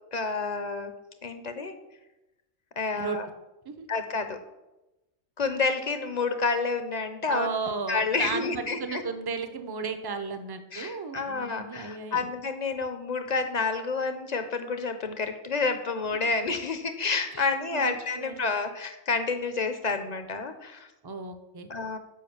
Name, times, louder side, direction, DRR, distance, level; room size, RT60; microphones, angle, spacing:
voice 1, 0.1-0.9 1.2-1.7 2.8-3.3 3.9-4.4 5.4-7.5 7.9-9.0 10.7-20.9 21.7-22.0, left 4 dB, 40° left, 8 dB, 0.7 m, -29 dB
voice 2, 7.3-12.3 17.3-18.4 21.0-21.7, right 4 dB, 25° right, 8 dB, 0.5 m, -34 dB
7.4 x 5.2 x 7.1 m, 0.97 s
omnidirectional pair, 1.4 m